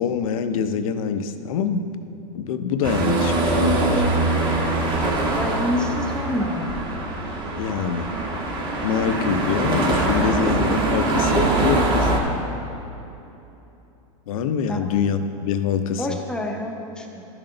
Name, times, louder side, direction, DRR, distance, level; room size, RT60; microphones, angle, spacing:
voice 1, 0.0-1.8 2.3-4.1 7.5-8.1 8.8-12.2 14.3-16.2, left 7 dB, 75° left, 9 dB, 0.6 m, -25 dB
sound 1, 2.8-12.2, right 2 dB, 25° right, 1.1 m, -22 dB
voice 2, 5.4-6.7 14.7-14.8 16.0-17.3, left 1 dB, 5° left, 1 dB, 0.6 m, -27 dB
12.0 x 6.1 x 3.8 m, 2.8 s
supercardioid pair, 150°, 18 cm